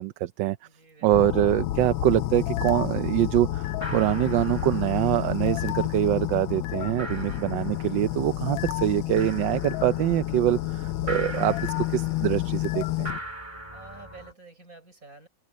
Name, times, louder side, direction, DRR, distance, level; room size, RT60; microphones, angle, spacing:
voice 1, 0.0-0.6 1.0-13.1, right 14 dB, 70° right, 1.3 m, -24 dB
voice 2, 0.6-2.0 6.9-7.4 13.7-15.3, right 3 dB, 40° right, 6.7 m, -51 dB
sound 1, 1.1-13.2, left 14 dB, 80° left, 1.5 m, -30 dB
sound 2, 1.1-1.3 1.5-2.1 2.4-3.0 3.3-3.4 3.7-14.3, right 1 dB, 15° right, 4.0 m, -42 dB
omnidirectional pair, 2.2 m